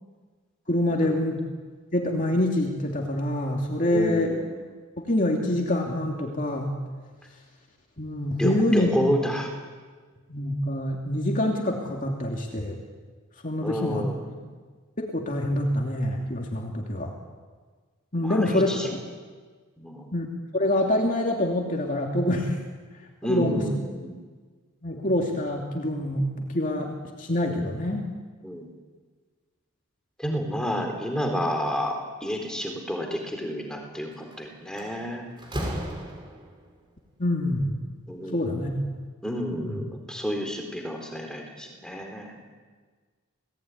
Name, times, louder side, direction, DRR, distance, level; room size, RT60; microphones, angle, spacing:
voice 1, 0.7-1.4 1.9-4.4 5.1-6.7 8.0-8.9 10.3-12.8 13.4-14.1 15.0-17.1 18.1-19.0 20.1-20.3 20.5-22.6 23.3-23.7 24.8-28.1 37.2-37.7 38.3-38.7 39.6-39.8, left 1 dB, 35° left, 1 dB, 2.7 m, -26 dB
voice 2, 3.8-4.4 8.4-9.5 13.6-14.5 18.2-18.9 19.8-20.2 23.2-24.2 28.4-28.7 30.2-35.3 38.1-38.5 39.2-42.4, equal, 5° left, 2 dB, 3.9 m, -30 dB
Slam, 34.1-34.4 34.8-36.6, equal, 20° right, 5.3 m, -34 dB
28.0 x 19.0 x 9.6 m, 1.5 s
head